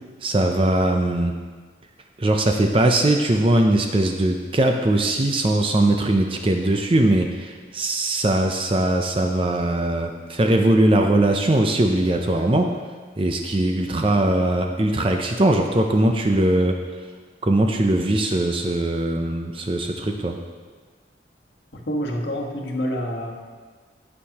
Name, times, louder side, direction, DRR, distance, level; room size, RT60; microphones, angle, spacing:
voice 1, 0.2-1.3 2.2-12.7 13.2-16.8 17.4-20.4, right 1 dB, 30° right, 4 dB, 0.5 m, -20 dB
voice 2, 21.7-23.3, equal, 75° left, 0 dB, 1.4 m, -27 dB
15.0 x 6.5 x 2.9 m, 1.4 s
head